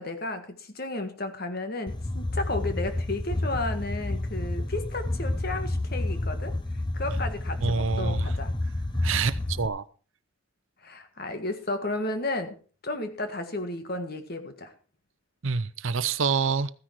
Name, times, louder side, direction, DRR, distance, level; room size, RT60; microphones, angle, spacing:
voice 1, 0.0-6.6 6.9-8.5 10.8-12.6 12.8-14.7, left 2 dB, 45° left, 8 dB, 1.6 m, -33 dB
sound 1, 1.9-9.7, left 1 dB, 20° left, 0.9 m, -30 dB
voice 2, 7.6-8.3 9.0-9.8 15.4-16.7, right 5 dB, 65° right, 16 dB, 0.7 m, -27 dB
14.5 x 10.0 x 4.6 m, 0.39 s
head